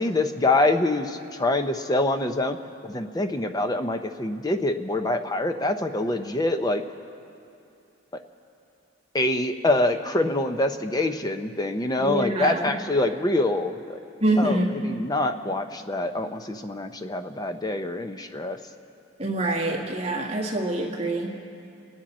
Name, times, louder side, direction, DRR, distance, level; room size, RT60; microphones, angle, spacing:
voice 1, 0.0-2.6 2.8-6.8 9.1-14.0 14.4-18.6, left 2 dB, 20° left, 8 dB, 0.6 m, -25 dB
voice 2, 12.0-12.7 14.2-14.7 19.2-21.3, right 2 dB, 30° right, -1 dB, 1.7 m, -25 dB
30.0 x 10.0 x 4.3 m, 2.6 s
head